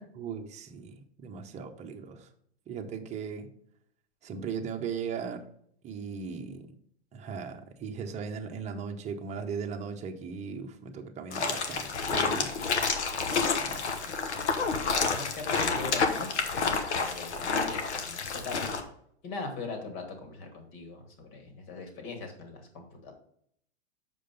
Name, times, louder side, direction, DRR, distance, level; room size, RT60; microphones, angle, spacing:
voice 1, 0.2-2.3 2.7-3.5 4.2-5.4 5.8-6.7 7.1-12.6 13.6-14.0, right 6 dB, 20° right, 4 dB, 0.9 m, -38 dB
sound 1, 11.3-18.8, left 5 dB, 80° left, 1.3 m, -29 dB
voice 2, 13.6-14.2 14.9-18.7 19.2-23.1, left 3 dB, 45° left, 4 dB, 2.5 m, -41 dB
6.9 x 5.1 x 5.3 m, 0.67 s
hypercardioid pair, 120°, 34 cm